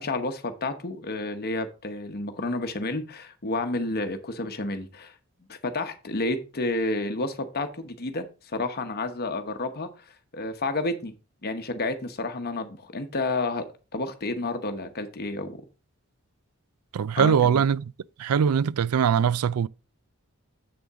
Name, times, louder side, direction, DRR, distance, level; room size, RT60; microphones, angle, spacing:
voice 1, 0.0-5.1 5.5-8.3 8.5-9.9 10.3-11.1 11.4-13.7 13.9-15.6 17.2-17.6, left 2 dB, 45° left, 0.9 m, -30 dB
voice 2, 16.9-17.9 18.2-19.7, right 7 dB, 85° right, 0.4 m, -22 dB
7.7 x 6.9 x 3.6 m
head